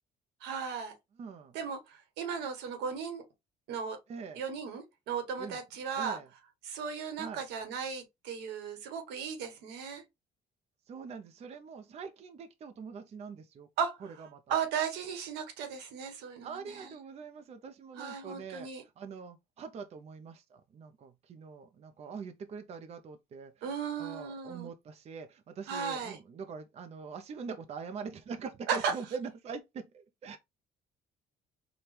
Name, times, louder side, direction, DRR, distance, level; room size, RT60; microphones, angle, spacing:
voice 1, 0.4-0.9 1.5-3.2 3.7-4.0 4.3-6.2 6.6-10.0 13.8-14.0 14.5-16.9 18.0-18.8 23.6-24.7 25.7-26.2 28.7-28.9, right 6 dB, 90° right, 1.1 m, -36 dB
voice 2, 1.2-1.5 4.1-4.4 5.4-5.6 5.9-6.3 7.2-7.4 10.9-13.7 14.0-14.6 16.4-18.7 19.0-30.4, right 5 dB, 40° right, 0.5 m, -43 dB
4.3 x 2.2 x 3.2 m
cardioid pair, 110°, 17 cm